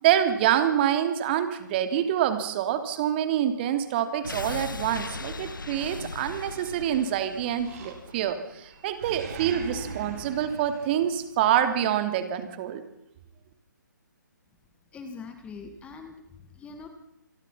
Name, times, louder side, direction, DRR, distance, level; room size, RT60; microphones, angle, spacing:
voice 1, 0.0-12.8, right 10 dB, 30° right, 8 dB, 3.0 m, -26 dB
sound 1, 4.2-9.2 9.5-9.6, left 3 dB, 80° left, 1.7 m, -39 dB
Animal, 6.3-7.1 7.6-8.4 8.7-11.6, right 4 dB, 45° right, 6.6 m, -41 dB
voice 2, 14.9-16.9, left 4 dB, 10° left, 7 dB, 2.1 m, -43 dB
27.5 x 22.5 x 5.7 m, 0.82 s
figure-of-eight pair, 145°, 11 cm